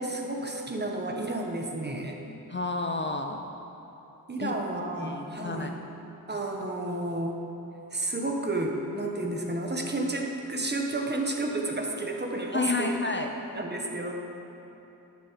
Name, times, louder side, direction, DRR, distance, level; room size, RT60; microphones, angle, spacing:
voice 1, 0.0-2.2 4.3-5.7 6.3-7.4 7.9-12.9 13.5-14.1, right 2 dB, 30° right, 1 dB, 1.2 m, -31 dB
voice 2, 2.5-3.4 4.4-4.6 5.0-5.8 12.5-13.3, left 3 dB, 30° left, 4 dB, 0.5 m, -30 dB
12.5 x 8.4 x 4.7 m, 3.0 s
wide cardioid pair, 105°, 37 cm